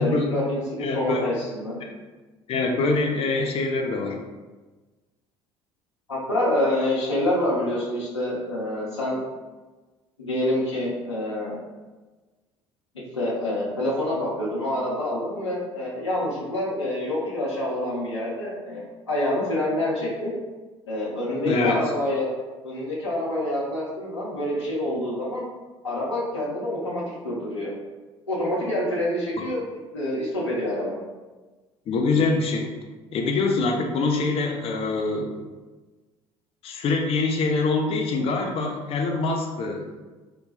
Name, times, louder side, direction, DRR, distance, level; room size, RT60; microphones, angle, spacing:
voice 1, 0.0-1.8 6.1-9.2 10.2-11.6 13.1-20.3 20.9-22.3 22.6-25.4 25.8-27.7 28.3-29.6 29.9-30.9 38.3-38.4, left 1 dB, 80° left, -6 dB, 0.9 m, -27 dB
voice 2, 0.8-1.3 1.8-2.0 2.5-4.2 21.4-21.8 29.4-29.5 31.9-32.7 33.1-35.4 36.6-39.8, left 3 dB, 45° left, 2 dB, 0.6 m, -24 dB
3.9 x 2.2 x 4.0 m, 1.3 s
figure-of-eight pair, 55°, 14 cm